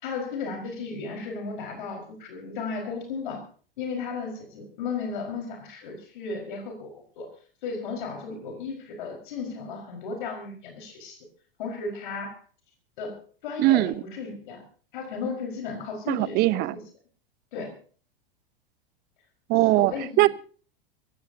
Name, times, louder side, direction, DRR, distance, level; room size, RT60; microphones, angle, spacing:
voice 1, 0.0-3.4 3.8-7.3 7.6-11.2 11.6-12.4 13.0-14.6 14.9-16.8 17.5-17.8 19.8-20.3, left 4 dB, 60° left, 3 dB, 4.9 m, -35 dB
voice 2, 13.6-13.9 16.1-16.7 19.5-19.9 20.2-20.3, right 19 dB, 35° right, 20 dB, 0.8 m, -20 dB
24.0 x 16.5 x 2.8 m, 0.42 s
figure-of-eight pair, 90°, 29 cm